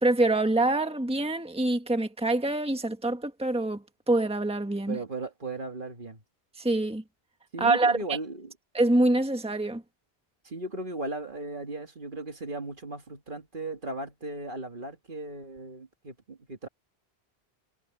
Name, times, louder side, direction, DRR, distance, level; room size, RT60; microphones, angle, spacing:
voice 1, 0.0-5.0 6.6-7.0 7.6-8.0 8.7-9.8, right 2 dB, 5° right, 1.5 m, -25 dB
voice 2, 4.9-6.2 7.5-8.5 10.4-16.7, right 2 dB, 50° right, 2.1 m, -37 dB
omnidirectional pair, 1.1 m